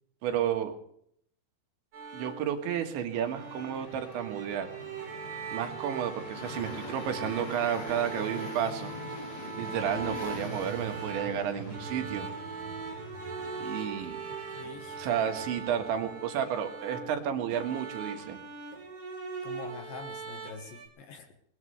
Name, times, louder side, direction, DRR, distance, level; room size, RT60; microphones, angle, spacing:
voice 1, 0.2-0.7 2.1-4.7 5.5-8.9 9.6-12.3 13.6-14.2 15.0-18.4, right 9 dB, 80° right, 5 dB, 3.9 m, -32 dB
sound 1, 1.9-20.9, right 4 dB, 45° right, 5.0 m, -40 dB
sound 2, 3.1-15.5, left 1 dB, 40° left, 3.6 m, -44 dB
voice 2, 14.5-15.1 19.4-21.3, left 5 dB, 60° left, 5 dB, 2.8 m, -45 dB
20.5 x 20.5 x 3.4 m, 0.68 s
omnidirectional pair, 5.2 m